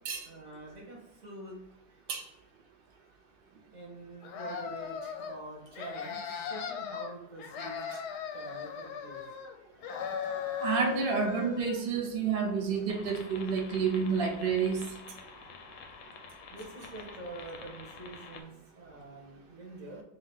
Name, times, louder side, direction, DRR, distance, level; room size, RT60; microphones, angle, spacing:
voice 1, 0.2-1.6 3.7-7.8 8.3-9.2 16.5-20.0, right 2 dB, 30° right, -3 dB, 1.2 m, -46 dB
sound 1, 4.2-5.4 5.7-7.1 7.4-9.6 9.8-11.8, left 7 dB, 90° left, 1.2 m, -38 dB
voice 2, 10.6-14.9, right 5 dB, 85° right, 2 dB, 0.4 m, -29 dB
sound 2, 12.9-18.4, left 5 dB, 65° left, 0.9 m, -48 dB
3.5 x 2.8 x 3.5 m, 0.90 s
omnidirectional pair, 1.7 m